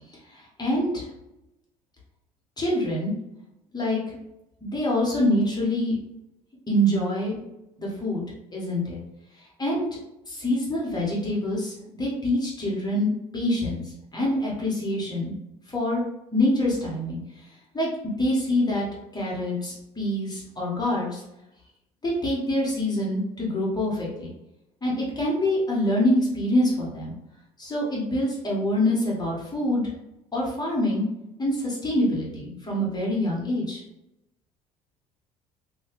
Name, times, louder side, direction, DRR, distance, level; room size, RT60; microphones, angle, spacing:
voice 1, 0.3-1.1 2.6-3.1 3.7-4.0 4.6-6.0 6.7-7.4 7.8-8.2 8.5-9.0 9.6-9.9 10.3-15.3 15.7-16.0 16.3-17.5 17.7-17.9 18.2-18.9 19.1-21.2 22.0-24.3 24.8-27.1 27.6-29.8 30.3-31.1 31.4-33.8, left 1 dB, 20° left, -4 dB, 1.4 m, -25 dB
2.9 x 2.6 x 3.1 m, 0.88 s
hypercardioid pair, 60°, 19 cm